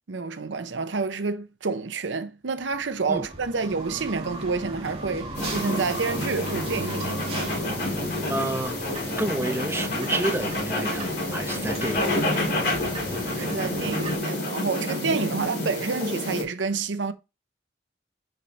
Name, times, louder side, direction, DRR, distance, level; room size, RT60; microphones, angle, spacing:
voice 1, 0.1-7.2 13.4-17.1, right 4 dB, 80° right, 0.7 m, -29 dB
sound 1, 2.6-14.2, right 1 dB, 35° right, 1.9 m, -36 dB
sound 2, 5.3-16.4, left 1 dB, 55° left, 3.9 m, -29 dB
voice 2, 8.3-8.7 9.2-12.4 15.2-15.3, right 1 dB, 15° right, 0.8 m, -30 dB
6.7 x 5.5 x 3.3 m
head